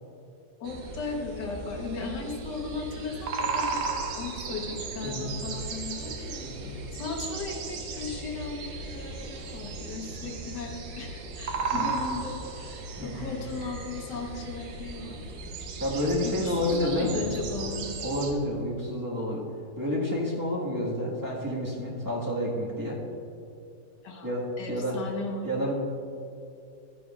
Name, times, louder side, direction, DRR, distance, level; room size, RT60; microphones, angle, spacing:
voice 1, 0.6-15.2 16.2-17.9 24.0-24.3 24.6-25.7, left 3 dB, 70° left, 1 dB, 1.7 m, -37 dB
sound 1, 0.6-18.3, right 4 dB, 85° right, 1.6 m, -36 dB
voice 2, 6.4-6.7 11.6-11.8 13.0-13.3 15.8-17.4 18.0-19.4 19.8-23.0 24.2-25.0 25.4-25.7, left 1 dB, 10° right, -5 dB, 1.4 m, -29 dB
13.5 x 9.2 x 2.4 m, 2.5 s
omnidirectional pair, 1.9 m